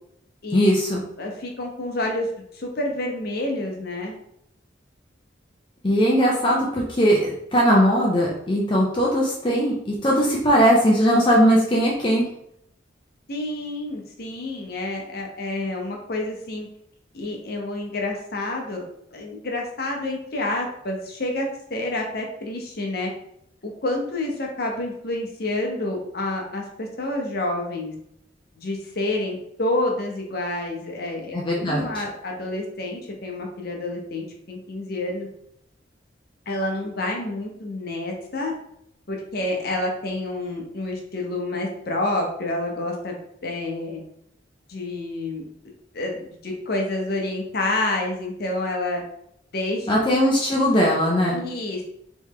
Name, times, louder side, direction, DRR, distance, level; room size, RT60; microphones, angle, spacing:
voice 1, 0.5-1.0 5.8-12.2 31.3-31.8 49.9-51.4, equal, 25° left, -3 dB, 0.6 m, -19 dB
voice 2, 1.2-2.3 2.5-4.1 13.3-16.7 17.1-18.8 19.1-23.1 23.6-27.9 28.6-35.3 36.5-38.5 39.1-43.1 43.4-44.0 44.7-45.4 45.9-49.0 49.5-50.0 51.3-51.8, left 2 dB, 55° left, 1 dB, 0.9 m, -28 dB
3.4 x 3.1 x 3.6 m, 0.73 s
head